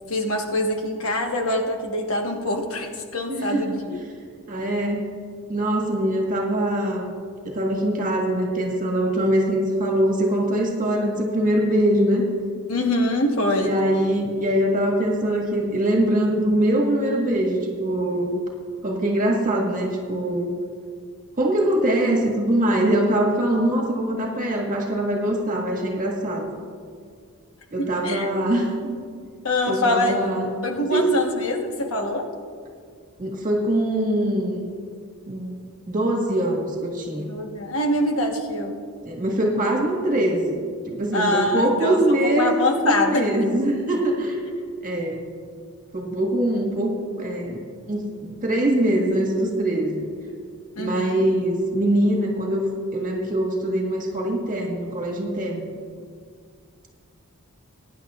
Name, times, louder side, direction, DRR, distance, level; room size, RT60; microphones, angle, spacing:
voice 1, 0.1-4.0 12.7-13.8 27.8-28.3 29.4-30.3 30.6-32.3 37.3-38.8 41.1-42.0 42.2-43.3 50.7-51.2, left 1 dB, 65° left, 2 dB, 1.3 m, -24 dB
voice 2, 3.3-3.8 4.5-5.0 5.5-7.1 7.5-12.2 13.6-18.4 18.8-20.6 21.4-26.5 27.7-28.9 29.7-30.5 30.9-31.1 33.2-34.7 35.3-35.6 35.9-37.3 39.0-44.4 44.8-45.2 45.9-47.6 47.9-50.1 50.8-52.7 52.9-55.7, right 1 dB, 35° right, -1 dB, 1.8 m, -23 dB
22.5 x 10.5 x 2.5 m, 2.1 s
head